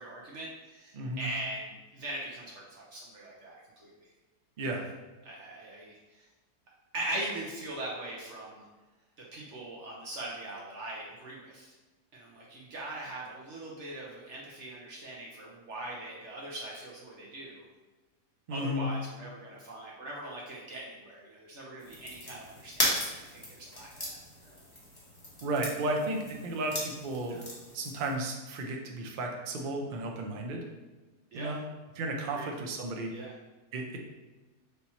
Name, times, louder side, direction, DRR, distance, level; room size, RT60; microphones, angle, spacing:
voice 1, 0.0-4.0 4.6-4.8 5.2-6.3 6.9-8.7 9.3-11.7 12.1-17.6 18.5-24.2 24.4-24.6 27.3-27.4 31.3-31.5 32.3-32.5 33.1-33.3, right 1 dB, 60° right, -4 dB, 0.9 m, -41 dB
voice 2, 0.9-1.3 4.6-4.9 18.5-18.9 25.4-27.4 27.7-30.6 31.3-31.6 32.0-33.1 33.7-34.0, right 1 dB, 80° right, 2 dB, 0.4 m, -33 dB
sound 1, 21.8-28.1, left 1 dB, 20° left, 0.8 m, -37 dB
3.4 x 2.9 x 4.0 m, 1.2 s
omnidirectional pair, 1.7 m